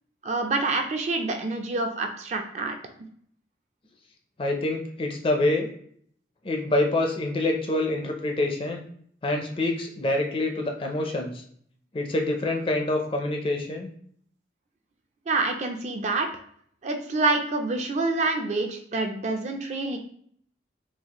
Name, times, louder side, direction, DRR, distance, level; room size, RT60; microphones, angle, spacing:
voice 1, 0.2-2.8 15.3-16.3 16.8-20.0, right 3 dB, 40° right, 4 dB, 0.4 m, -27 dB
voice 2, 4.4-5.7 6.4-8.8 9.2-11.4 11.9-13.9, left 2 dB, 30° left, 2 dB, 0.4 m, -26 dB
4.0 x 2.4 x 2.9 m, 0.62 s
head